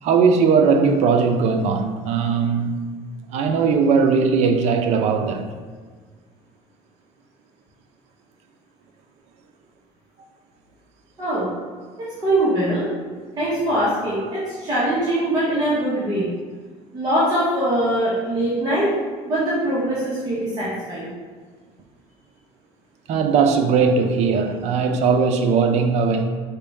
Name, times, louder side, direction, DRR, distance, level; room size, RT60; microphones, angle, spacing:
voice 1, 0.0-2.9 3.3-5.5 23.1-26.2, right 5 dB, 60° right, 6 dB, 0.5 m, -19 dB
voice 2, 12.2-12.8 13.4-16.2 16.9-18.9 19.3-21.1, right 1 dB, 30° right, -10 dB, 1.3 m, -22 dB
5.2 x 2.8 x 3.5 m, 1.5 s
cardioid pair, 125°, 13 cm